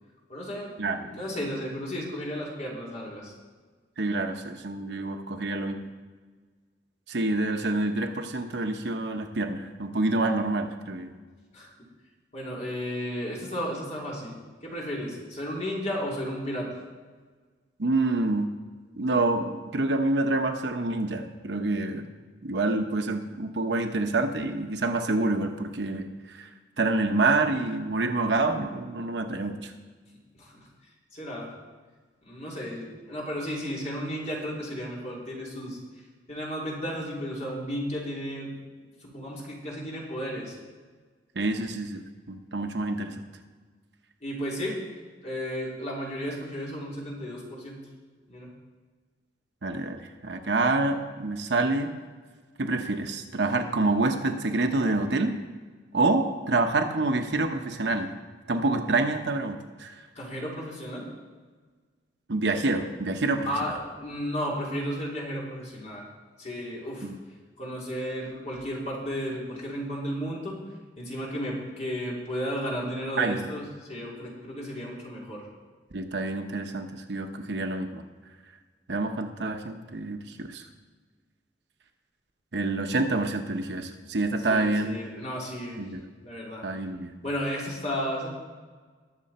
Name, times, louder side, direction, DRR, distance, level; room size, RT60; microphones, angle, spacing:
voice 1, 0.3-3.3 11.5-11.9 12.3-14.3 14.6-16.8 30.4-30.7 31.1-31.5 32.2-35.8 36.3-38.6 39.0-40.6 44.2-44.8 45.2-47.8 48.3-48.5 60.1-61.1 63.5-66.1 66.4-67.1 67.6-70.6 70.9-75.5 84.5-85.8 86.2-86.6 87.2-88.3, equal, 40° left, -4 dB, 3.3 m, -33 dB
voice 2, 4.0-5.9 7.1-11.1 17.8-18.5 19.0-22.1 22.4-26.5 26.8-29.7 41.3-42.0 42.3-43.1 49.6-51.9 52.6-55.4 55.9-58.1 58.5-60.0 62.3-63.5 67.0-67.1 73.2-73.4 75.9-78.0 78.9-80.6 82.5-85.0 85.8-86.0 86.6-87.1, right 2 dB, 65° right, 5 dB, 0.9 m, -27 dB
20.5 x 6.8 x 4.3 m, 1.5 s
head